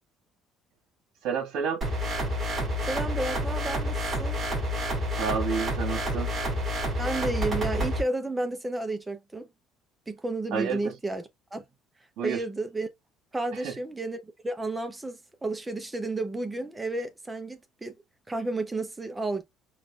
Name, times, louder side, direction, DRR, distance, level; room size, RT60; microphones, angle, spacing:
voice 1, 1.2-1.8 5.2-6.3 10.5-10.9 12.2-12.4 13.6-13.7, right 6 dB, 70° right, 1.7 m, -29 dB
sound 1, 1.8-8.0, equal, 30° right, 2.5 m, -29 dB
voice 2, 2.8-4.4 7.0-9.5 10.1-11.6 12.2-12.9 13.3-18.0 18.3-19.4, right 2 dB, 10° right, 0.6 m, -32 dB
4.7 x 2.6 x 2.3 m
cardioid pair, 145°, 0 cm